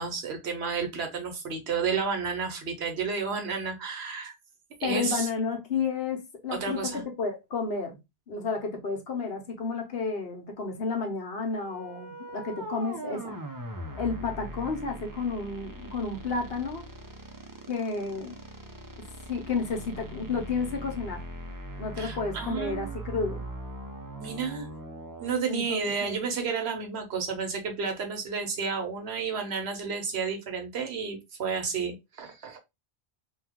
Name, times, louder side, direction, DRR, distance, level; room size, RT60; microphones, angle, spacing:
voice 1, 0.0-4.3 4.8-5.3 6.5-7.0 22.0-23.0 24.2-24.7 25.2-32.6, right 5 dB, 80° right, 1.1 m, -31 dB
voice 2, 4.8-8.0 8.3-13.4 14.0-16.9 17.7-18.4 19.3-21.2 21.8-23.4 25.5-26.3, left 4 dB, 65° left, 1.1 m, -31 dB
sound 1, 11.5-25.4, right 1 dB, 30° right, 0.4 m, -41 dB
2.9 x 2.3 x 3.5 m
omnidirectional pair, 1.1 m